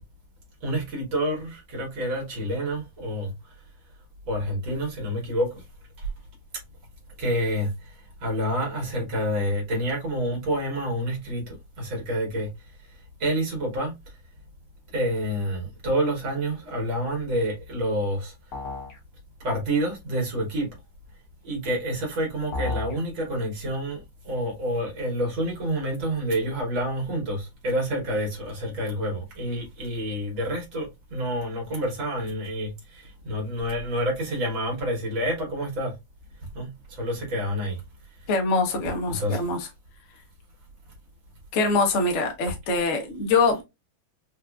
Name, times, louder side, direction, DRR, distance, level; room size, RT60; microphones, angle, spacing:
voice 1, 0.6-3.3 4.3-5.6 6.0-6.1 7.2-8.0 8.2-12.5 13.2-13.9 14.9-18.3 19.4-20.7 21.4-35.9 36.5-37.8 39.1-39.4, equal, 80° right, 2.0 m, -28 dB
sound 1, 18.5-19.0 22.5-23.0, left 3 dB, 65° left, 1.8 m, -31 dB
voice 2, 38.3-39.7 41.5-43.6, left 3 dB, 50° left, 0.9 m, -24 dB
4.6 x 2.4 x 2.3 m
omnidirectional pair, 2.1 m